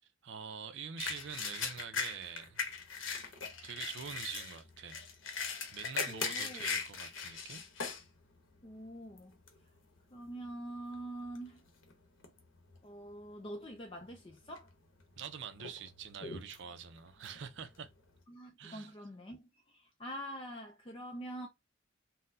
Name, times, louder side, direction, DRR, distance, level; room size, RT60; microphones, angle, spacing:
voice 1, 0.2-2.6 3.6-5.0 5.7-7.6 15.2-17.9 18.6-18.9, right 7 dB, 70° right, 0.4 m, -45 dB
sound 1, 1.0-8.1 8.6-8.7 9.2-9.6 10.3-10.5 10.8-11.9 12.2-12.8 13.2-13.3 14.1-14.7 15.1-18.2, left 5 dB, 85° left, 0.9 m, -40 dB
voice 2, 6.1-6.8 8.6-9.4 10.1-11.6 12.8-14.7 18.3-21.5, right 1 dB, 25° left, 0.4 m, -45 dB
4.1 x 2.0 x 2.6 m
head